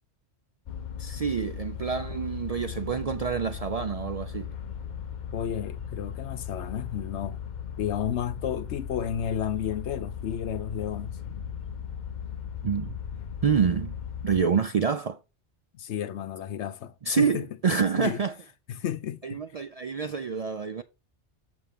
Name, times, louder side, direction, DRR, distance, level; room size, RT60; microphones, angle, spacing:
sound 1, 0.7-14.4, left 8 dB, 50° left, 0.7 m, -37 dB
voice 1, 1.0-4.5 12.6-13.0 13.4-13.9 14.2-15.2 17.1-18.3 19.2-20.8, right 6 dB, 60° right, 0.4 m, -27 dB
voice 2, 5.3-7.4 7.8-11.2 15.7-17.5 18.0-18.2 18.7-19.4, left 9 dB, 80° left, 1.0 m, -32 dB
6.9 x 6.2 x 3.6 m
omnidirectional pair, 1.2 m